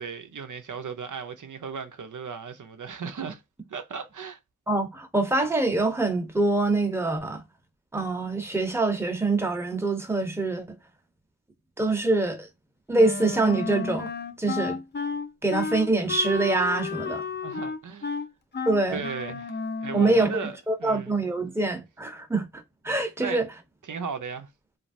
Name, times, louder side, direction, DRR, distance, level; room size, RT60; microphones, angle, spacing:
voice 1, 0.0-3.4 3.7-4.4 17.4-18.2 18.9-21.1 23.2-23.4 23.8-24.5, right 6 dB, 80° right, 0.6 m, -36 dB
voice 2, 4.7-7.4 7.9-10.8 11.8-12.5 12.9-14.1 14.4-14.8 15.4-17.2 18.7-19.0 19.9-23.5, right 2 dB, 10° right, 0.7 m, -25 dB
Wind instrument woodwind instrument, 12.9-20.5, left 4 dB, 35° left, 0.5 m, -33 dB
3.0 x 2.5 x 2.5 m
wide cardioid pair, 60°, 30 cm